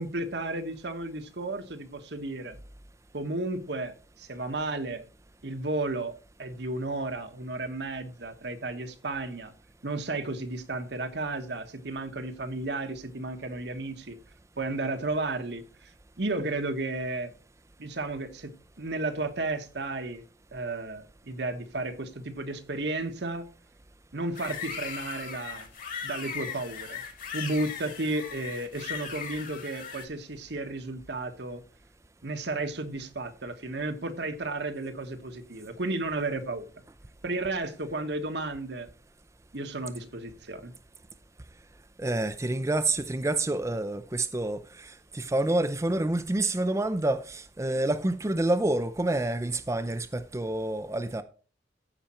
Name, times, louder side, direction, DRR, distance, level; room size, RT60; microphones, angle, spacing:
voice 1, 0.0-2.6 3.1-5.0 5.4-9.5 9.8-14.2 14.6-15.9 16.2-17.3 17.8-20.2 20.5-23.5 24.1-25.7 26.0-27.0 27.3-31.6 32.2-36.8 37.2-38.9 39.5-40.7, right 2 dB, 65° right, 1.3 m, -33 dB
sound 1, 24.3-30.0, left 7 dB, 50° left, 2.2 m, -38 dB
voice 2, 42.0-51.2, right 2 dB, 15° right, 0.5 m, -28 dB
14.5 x 5.1 x 4.3 m
head